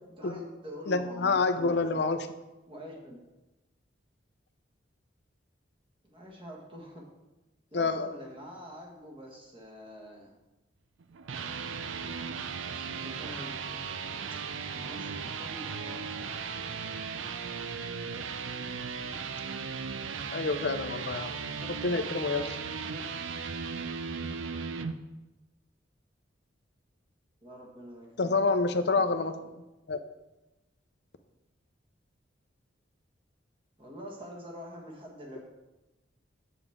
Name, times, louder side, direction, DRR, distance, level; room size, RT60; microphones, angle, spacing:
voice 1, 0.2-2.0 2.7-3.2 6.0-7.0 7.7-10.3 12.7-13.6 14.7-16.2 27.4-29.3 33.8-35.4, equal, 25° right, -1 dB, 1.5 m, -45 dB
voice 2, 0.9-2.3 7.7-8.1 20.3-22.6 28.2-29.3 29.9-30.0, left 3 dB, 60° left, 9 dB, 0.6 m, -28 dB
sound 1, 11.0-24.9, right 5 dB, 90° right, 0.5 m, -37 dB
7.9 x 7.0 x 3.6 m, 1.0 s
head